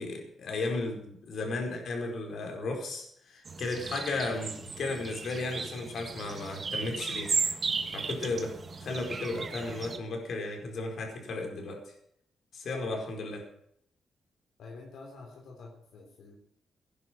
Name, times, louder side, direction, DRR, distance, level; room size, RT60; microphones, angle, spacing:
voice 1, 0.0-7.3 7.9-8.5 8.8-11.9 12.5-13.5, left 2 dB, 60° left, 2 dB, 4.7 m, -34 dB
sound 1, 3.4-10.0, right 4 dB, 35° right, 1.4 m, -35 dB
voice 2, 14.6-16.4, left 3 dB, 85° left, 0 dB, 3.6 m, -48 dB
16.5 x 11.0 x 6.2 m, 0.70 s
wide cardioid pair, 135°, 0 cm